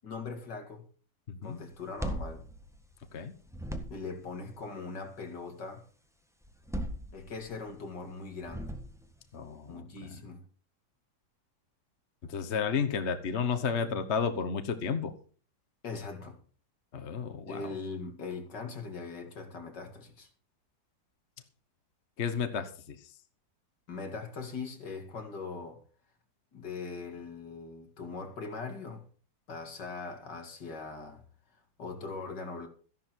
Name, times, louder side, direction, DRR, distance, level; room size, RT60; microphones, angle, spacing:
voice 1, 0.0-0.9 1.4-2.4 3.9-5.8 7.1-8.7 9.7-10.4 13.8-14.0 15.8-16.4 17.5-20.3 23.9-25.8 26.5-29.0 29.5-31.2 31.8-32.7, left 4 dB, 65° left, 2.9 m, -41 dB
voice 2, 1.3-1.6 3.1-3.3 9.3-10.2 12.3-15.1 16.9-17.6 22.2-23.0, left 6 dB, 40° left, 1.2 m, -32 dB
sound 1, 1.7-3.2 3.5-4.3 6.4-7.6 8.4-9.2, right 1 dB, ahead, 1.3 m, -38 dB
14.0 x 11.5 x 4.6 m
omnidirectional pair, 2.0 m